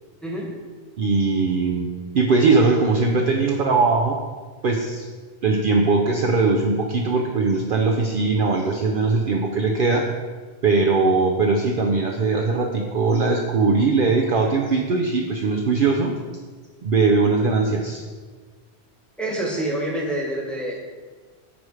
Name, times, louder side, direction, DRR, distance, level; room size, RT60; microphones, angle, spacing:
voice 1, 1.0-4.2 4.6-5.1 5.4-10.1 10.6-16.1 16.8-18.0, right 3 dB, 60° right, 1 dB, 0.7 m, -20 dB
voice 2, 19.2-21.0, right 1 dB, ahead, -3 dB, 1.1 m, -27 dB
9.2 x 3.2 x 4.8 m, 1.4 s
omnidirectional pair, 1.2 m